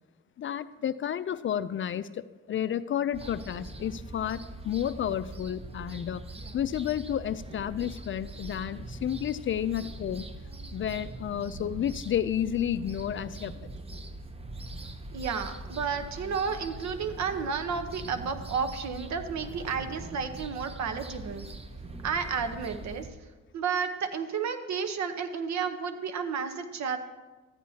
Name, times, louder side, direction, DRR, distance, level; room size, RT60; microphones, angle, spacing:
voice 1, 0.4-6.2 6.5-10.3 10.7-13.7, left 10 dB, 40° left, 14 dB, 0.4 m, -31 dB
sound 1, 3.1-23.1, right 2 dB, 20° right, 0.7 m, -42 dB
voice 2, 15.1-21.5 22.0-23.3 23.5-27.0, right 6 dB, 65° right, 9 dB, 1.0 m, -32 dB
14.0 x 10.0 x 2.8 m, 1.2 s
cardioid pair, 90°, 30 cm